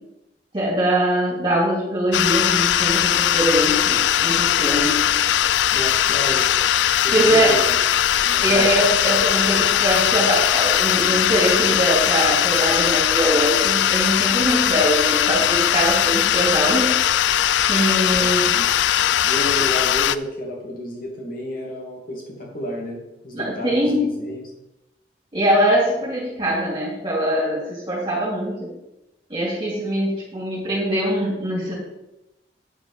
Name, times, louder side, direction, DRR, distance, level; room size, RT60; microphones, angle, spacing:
voice 1, 0.5-5.0 7.1-7.5 8.4-16.9 17.7-18.5 23.3-24.1 25.3-28.7 29.3-31.7, right 1 dB, 30° right, -6 dB, 2.6 m, -22 dB
sound 1, 2.1-20.2, left 11 dB, 80° left, 0.3 m, -19 dB
voice 2, 5.7-6.6 7.0-7.9 8.2-8.7 18.1-18.7 19.2-24.4, equal, 50° left, -1 dB, 2.6 m, -31 dB
8.8 x 5.1 x 6.0 m, 0.92 s
head